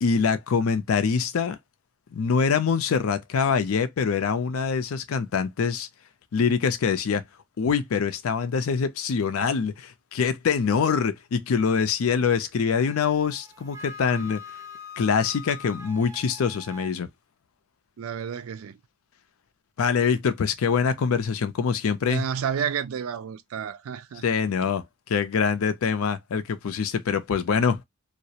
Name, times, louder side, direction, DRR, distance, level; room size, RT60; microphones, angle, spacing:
voice 1, 0.0-1.6 2.1-5.9 6.3-7.2 7.6-14.4 15.0-17.1 19.8-22.2 24.2-27.8, left 6 dB, 85° left, 0.4 m, -24 dB
Wind instrument woodwind instrument, 12.8-16.9, left 4 dB, 15° right, 0.4 m, -43 dB
voice 2, 18.0-18.8 22.1-24.3, right 7 dB, 90° right, 0.4 m, -31 dB
2.3 x 2.0 x 2.7 m
head